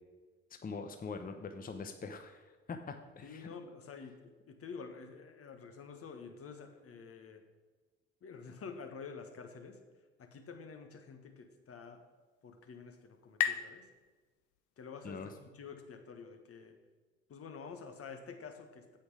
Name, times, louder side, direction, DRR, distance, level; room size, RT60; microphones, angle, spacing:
voice 1, 0.6-3.5 15.0-15.3, left 4 dB, 25° left, 7 dB, 0.9 m, -43 dB
voice 2, 3.2-7.4 8.2-9.8 10.2-12.0 12.4-13.9 14.8-16.8 17.3-19.0, left 5 dB, 40° left, 6 dB, 1.4 m, -49 dB
sound 1, 11.9-15.3, left 11 dB, 60° left, 0.7 m, -40 dB
8.7 x 8.1 x 4.9 m, 1.3 s
figure-of-eight pair, 50°, 35 cm